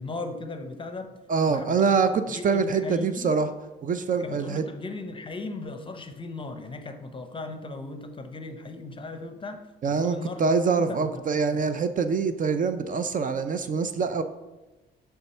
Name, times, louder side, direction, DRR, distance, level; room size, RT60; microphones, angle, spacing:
voice 1, 0.0-1.1 1.5-1.9 2.3-3.3 4.2-9.6 9.9-10.5 10.8-11.6, left 3 dB, 25° left, 7 dB, 0.7 m, -37 dB
voice 2, 1.3-3.5 3.8-4.6 9.8-14.2, right 5 dB, 45° right, 10 dB, 0.4 m, -25 dB
6.7 x 3.4 x 4.2 m, 1.1 s
cardioid pair, 90°, 20 cm